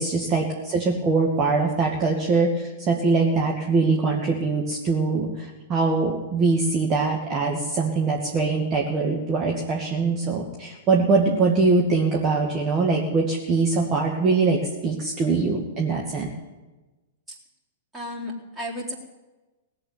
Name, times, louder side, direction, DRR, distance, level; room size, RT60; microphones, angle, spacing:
voice 1, 0.0-16.3, right 4 dB, 30° right, -1 dB, 2.1 m, -23 dB
voice 2, 17.9-19.0, left 1 dB, 10° right, -3 dB, 3.8 m, -33 dB
18.0 x 8.0 x 9.5 m, 1.1 s
hypercardioid pair, 105°, 0 cm